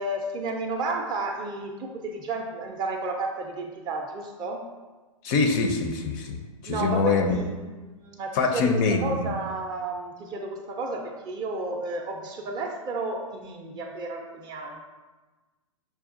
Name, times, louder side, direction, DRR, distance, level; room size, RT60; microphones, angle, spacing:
voice 1, 0.0-4.7 6.6-14.8, right 2 dB, 25° right, 2 dB, 0.4 m, -32 dB
voice 2, 5.2-7.4 8.3-9.3, left 4 dB, 35° left, 4 dB, 0.4 m, -24 dB
5.9 x 2.3 x 2.5 m, 1.2 s
hypercardioid pair, 125°, 18 cm